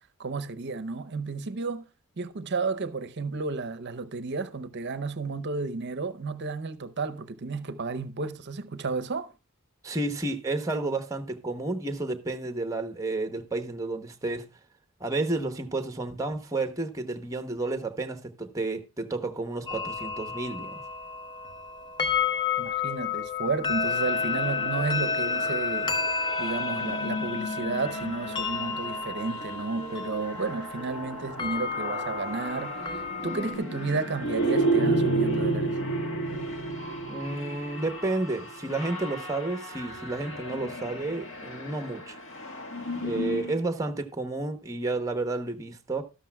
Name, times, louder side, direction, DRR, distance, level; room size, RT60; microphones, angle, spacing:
voice 1, 0.2-1.9 2.2-9.3 22.6-35.8 36.3-36.5, right 4 dB, 50° right, 0.6 m, -32 dB
voice 2, 9.8-14.5 15.0-20.8 37.1-42.2 43.0-46.0, right 2 dB, 15° right, 0.8 m, -31 dB
sound 1, 19.7-33.5, left 5 dB, 20° left, 0.7 m, -31 dB
sound 2, 23.8-43.6, right 2 dB, 55° left, 1.6 m, -33 dB
13.0 x 12.0 x 2.2 m
head